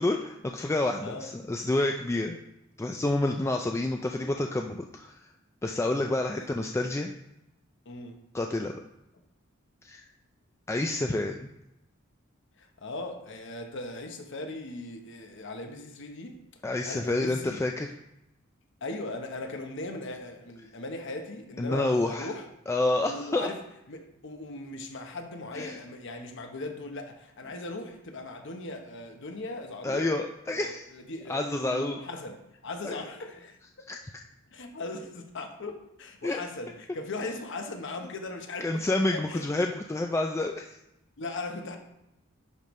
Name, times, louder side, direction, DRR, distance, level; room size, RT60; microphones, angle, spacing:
voice 1, 0.0-2.4 2.8-5.1 5.6-7.1 8.3-8.7 9.8-10.0 10.7-11.5 16.6-17.9 21.6-22.3 22.7-23.5 25.5-25.8 29.8-30.9 31.3-32.0 32.8-33.0 33.9-34.0 36.2-36.4 38.6-40.8, left 2 dB, 15° left, 0.3 m, -28 dB
voice 2, 1.0-1.3 6.3-6.5 7.8-8.2 12.6-16.4 16.8-17.6 18.8-22.5 23.1-23.6 23.9-30.2 30.5-33.6 34.5-39.4 41.2-41.8, left 2 dB, 65° left, 1.0 m, -39 dB
11.0 x 5.2 x 3.2 m
head